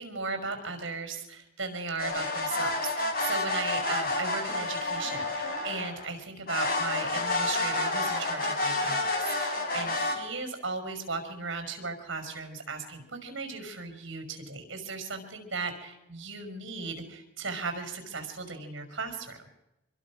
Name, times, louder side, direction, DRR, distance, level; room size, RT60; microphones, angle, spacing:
voice 1, 0.0-9.0 9.4-19.5, right 4 dB, 60° right, 6 dB, 5.3 m, -36 dB
sound 1, 2.0-6.1 6.5-10.2, left 2 dB, 45° left, 4.5 m, -29 dB
25.0 x 22.0 x 6.1 m, 0.90 s
head